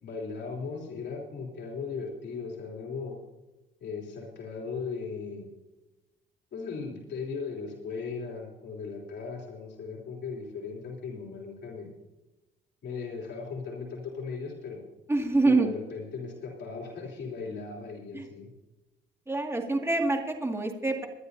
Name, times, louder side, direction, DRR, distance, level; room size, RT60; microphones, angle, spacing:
voice 1, 0.0-3.2 3.8-5.5 6.5-11.9 12.8-14.8 15.4-18.5, left 5 dB, 60° left, -2 dB, 3.3 m, -37 dB
voice 2, 15.1-15.7 18.1-18.3 19.3-21.1, right 2 dB, 10° right, 2 dB, 2.2 m, -26 dB
23.0 x 11.0 x 2.7 m, 1.1 s
cardioid pair, 90°, 20 cm